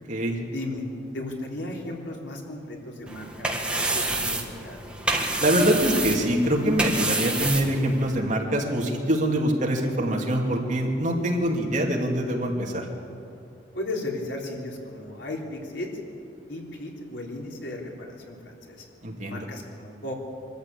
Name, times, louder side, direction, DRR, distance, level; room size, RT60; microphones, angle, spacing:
voice 1, 0.5-0.9 1.1-4.8 13.7-15.9 16.5-18.9 19.3-20.1, left 2 dB, 85° left, -1 dB, 3.6 m, -35 dB
sound 1, 3.1-8.2, right 2 dB, 5° right, 1.8 m, -28 dB
voice 2, 5.4-12.9 19.0-19.4, right 1 dB, 45° right, 0 dB, 2.9 m, -24 dB
24.0 x 13.5 x 8.6 m, 2.6 s
head